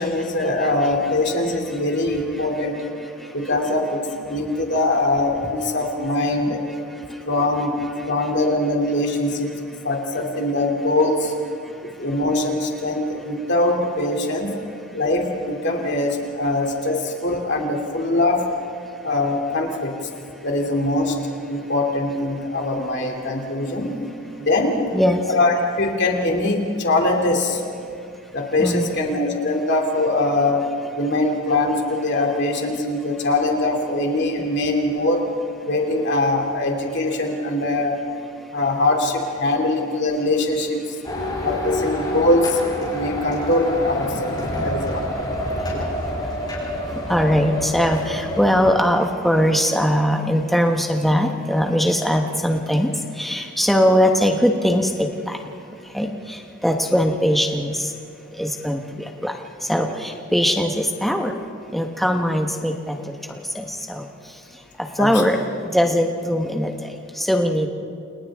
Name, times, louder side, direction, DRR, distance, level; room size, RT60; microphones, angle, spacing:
voice 1, 0.0-2.9 3.3-6.6 7.3-7.8 8.1-9.6 9.8-11.3 11.8-14.5 14.9-18.4 19.0-20.0 20.4-21.2 21.5-23.9 24.3-24.8 25.2-27.6 28.3-30.7 30.9-35.3 35.6-38.0 38.5-40.9 41.4-45.3 45.7-45.9 65.0-65.4, left 2 dB, 50° left, 1 dB, 2.8 m, -22 dB
voice 2, 24.9-25.2 28.6-29.0 47.1-52.9 53.2-55.4 55.9-56.1 56.6-57.8 58.4-58.8 59.2-59.3 59.7-61.3 61.7-63.0 63.5-64.0 65.0-65.4 65.7-66.7 67.2-67.7, equal, ahead, 2 dB, 1.3 m, -20 dB
sound 1, 41.0-48.7, left 1 dB, 20° left, 7.8 m, -27 dB
30.0 x 28.5 x 3.7 m, 2.4 s
head